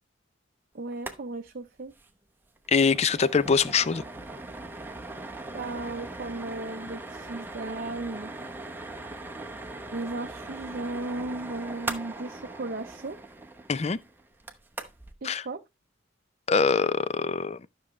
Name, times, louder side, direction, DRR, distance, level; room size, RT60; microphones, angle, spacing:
voice 1, 0.7-1.9 5.5-8.3 9.9-13.2 15.2-15.6, right 2 dB, 45° right, 0.6 m, -35 dB
sound 1, 0.9-1.2 1.5-1.6 1.9-2.1 2.4-15.1, right 2 dB, 10° right, 0.9 m, -40 dB
voice 2, 2.7-4.0 13.7-14.0 15.2-15.4 16.5-17.6, left 5 dB, 35° left, 0.4 m, -23 dB
12.0 x 6.3 x 3.1 m
head